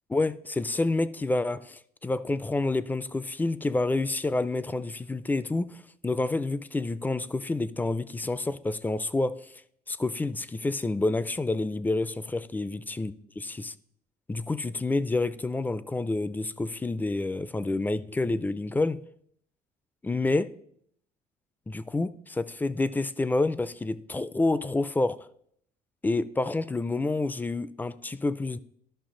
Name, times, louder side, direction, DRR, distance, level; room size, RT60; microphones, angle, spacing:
voice 1, 0.1-9.5 9.9-13.7 14.3-19.0 20.0-20.5 21.7-25.3 26.0-28.6, left 2 dB, 10° left, 0.3 m, -28 dB
12.5 x 5.7 x 3.8 m
cardioid pair, 110°, 17 cm